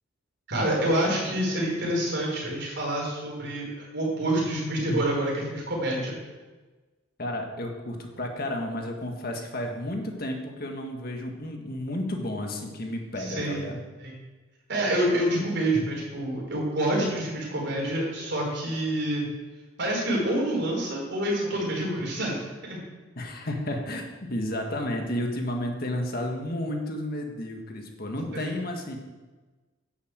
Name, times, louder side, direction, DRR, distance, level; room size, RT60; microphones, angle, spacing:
voice 1, 0.5-3.6 3.9-6.1 13.2-13.7 14.0-14.1 14.7-19.3 19.8-22.8 28.3-28.5, right 1 dB, 55° right, -3 dB, 5.1 m, -27 dB
voice 2, 7.2-13.8 23.2-29.0, left 1 dB, 45° left, 2 dB, 1.7 m, -32 dB
11.0 x 8.2 x 8.1 m, 1.3 s
head